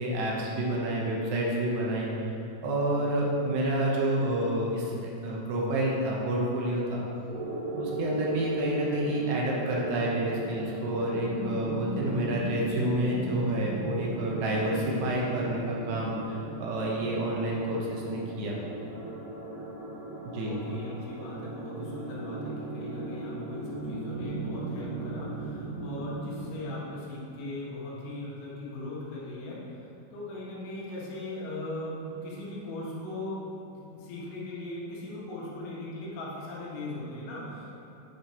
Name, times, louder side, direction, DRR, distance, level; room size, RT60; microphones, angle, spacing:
voice 1, 0.0-2.3 2.6-4.9 5.2-7.0 7.8-18.6 20.3-20.5, right 1 dB, 70° right, -3 dB, 3.0 m, -29 dB
sound 1, 7.3-26.6, right 2 dB, 50° right, 3.0 m, -37 dB
voice 2, 20.4-37.8, left 1 dB, 90° left, -5 dB, 4.0 m, -39 dB
8.8 x 6.5 x 4.3 m, 2.9 s
omnidirectional pair, 5.2 m